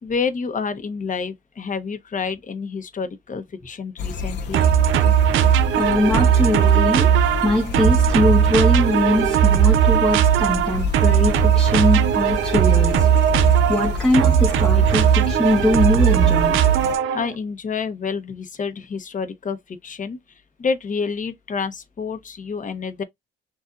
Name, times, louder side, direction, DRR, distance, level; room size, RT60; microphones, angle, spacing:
voice 1, 0.0-4.6 17.1-20.2 20.6-23.0, left 5 dB, 40° left, 1.1 m, -28 dB
sound 1, 4.0-17.0, left 4 dB, 60° left, 0.8 m, -29 dB
sound 2, 4.5-17.3, right 9 dB, 80° right, 0.5 m, -17 dB
voice 2, 5.7-7.1 7.4-13.1 13.7-16.6, left 1 dB, 5° left, 1.2 m, -21 dB
6.6 x 2.5 x 2.6 m
cardioid pair, 90°, 20 cm